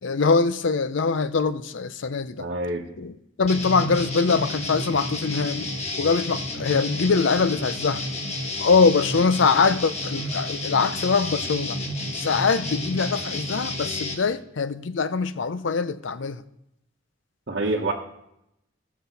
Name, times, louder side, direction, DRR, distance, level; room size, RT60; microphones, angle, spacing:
voice 1, 0.0-2.5 3.0-8.0 8.6-11.8 12.1-16.4, left 4 dB, 75° left, 0.5 m, -23 dB
voice 2, 2.4-2.9 17.5-17.9, right 2 dB, 60° right, 1.0 m, -26 dB
sound 1, 3.5-14.1, left 1 dB, 35° left, 1.4 m, -31 dB
16.0 x 6.1 x 4.1 m
head